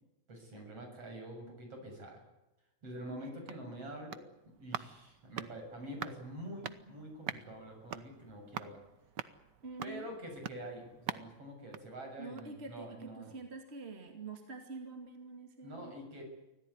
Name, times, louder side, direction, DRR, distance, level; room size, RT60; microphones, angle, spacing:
voice 1, 0.3-2.2 2.8-4.2 4.5-8.8 9.8-13.3 15.6-16.2, right 1 dB, 55° right, 3 dB, 8.2 m, -46 dB
sound 1, 3.1-12.7 13.0-13.1, right 9 dB, 75° right, 1.0 m, -46 dB
voice 2, 9.6-10.1 12.2-15.9, right 3 dB, 20° right, 4 dB, 2.5 m, -46 dB
25.0 x 17.0 x 9.8 m, 0.96 s
omnidirectional pair, 3.3 m